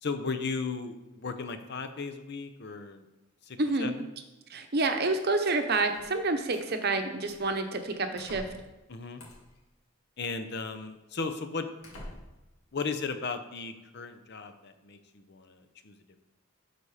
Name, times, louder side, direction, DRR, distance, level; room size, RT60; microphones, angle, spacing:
voice 1, 0.0-3.0 3.5-3.9 8.9-9.2 10.2-11.7 12.7-16.0, left 4 dB, 50° left, 8 dB, 0.7 m, -36 dB
voice 2, 3.6-3.9 4.5-8.4, right 3 dB, 50° right, 6 dB, 0.8 m, -28 dB
sound 1, 5.9-6.7 7.2-7.6 8.2-8.7 9.2-9.6 10.5-10.6 11.2-11.3 11.8-12.5, left 1 dB, 90° left, 1.9 m, -47 dB
12.0 x 4.2 x 4.9 m, 1.1 s
head